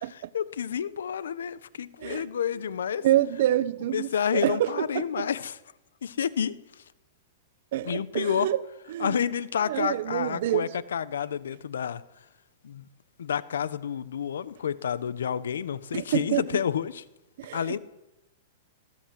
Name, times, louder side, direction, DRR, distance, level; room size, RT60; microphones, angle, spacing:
voice 1, 0.1-3.1 3.9-5.6 6.0-6.6 7.8-8.5 9.0-12.0 12.6-12.8 13.2-17.0 17.5-17.8, left 8 dB, 85° left, 1.3 m, -29 dB
voice 2, 3.0-5.3 7.7-8.6 8.9-9.2 9.7-10.7 15.9-16.6 17.4-17.8, right 13 dB, 60° right, 1.2 m, -27 dB
22.5 x 16.0 x 7.9 m
hypercardioid pair, 140°, 0 cm